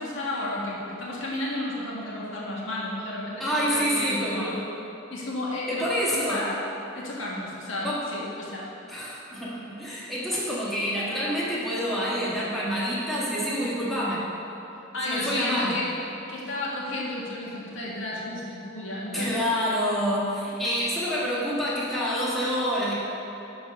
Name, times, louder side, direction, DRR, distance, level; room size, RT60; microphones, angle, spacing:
voice 1, 0.0-4.5 5.1-6.5 6.9-8.6 14.9-15.9 16.3-19.3, left 1 dB, 70° left, -5 dB, 1.7 m, -32 dB
voice 2, 3.4-4.5 5.7-6.4 7.8-8.0 8.9-14.2 15.0-15.8 19.1-22.9, equal, ahead, -8 dB, 1.4 m, -27 dB
11.0 x 4.1 x 5.2 m, 2.9 s
head